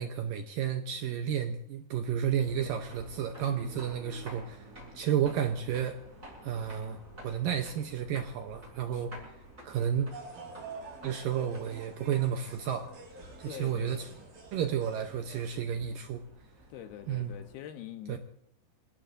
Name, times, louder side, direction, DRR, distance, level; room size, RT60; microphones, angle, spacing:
voice 1, 0.0-4.7 4.9-6.0 6.4-9.1 9.6-10.1 11.0-12.9 13.4-14.1 14.5-16.2 17.1-17.3 18.1-18.2, right 9 dB, 75° right, 2.1 m, -32 dB
sound 1, 2.3-17.5, right 1 dB, 20° right, 6.3 m, -51 dB
sound 2, 10.1-15.4, right 4 dB, 60° right, 6.9 m, -48 dB
voice 2, 13.4-14.3 16.7-18.2, left 11 dB, 70° left, 2.7 m, -45 dB
27.5 x 18.0 x 2.6 m
omnidirectional pair, 4.9 m